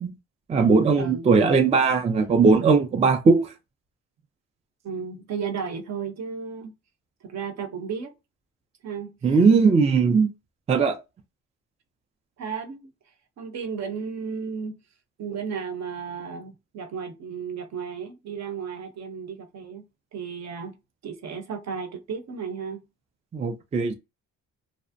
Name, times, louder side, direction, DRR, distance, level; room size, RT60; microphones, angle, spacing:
voice 1, 0.5-3.5 9.2-10.3 10.7-11.0 23.3-23.9, right 4 dB, 20° right, 0.3 m, -19 dB
voice 2, 4.8-6.7 7.2-8.1 8.8-9.4 12.4-12.9 13.4-14.8 15.2-19.9 20.1-20.8 21.0-22.8, right 6 dB, 60° right, 0.7 m, -34 dB
2.4 x 2.0 x 2.5 m
cardioid pair, 90°, 30 cm